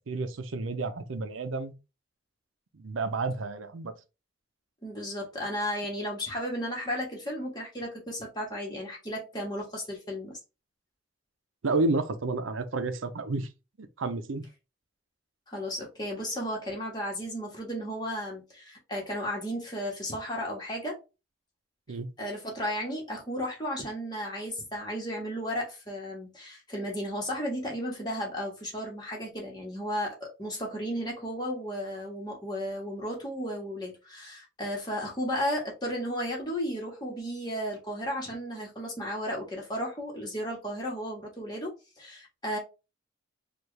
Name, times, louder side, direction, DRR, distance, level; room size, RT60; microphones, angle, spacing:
voice 1, 0.0-1.7 2.7-3.9 11.6-13.5 14.0-14.4 21.9-22.1, right 3 dB, 90° right, 0.6 m, -30 dB
voice 2, 4.8-10.4 15.5-21.0 22.2-42.6, equal, 20° left, 1.5 m, -34 dB
4.5 x 2.5 x 3.2 m
head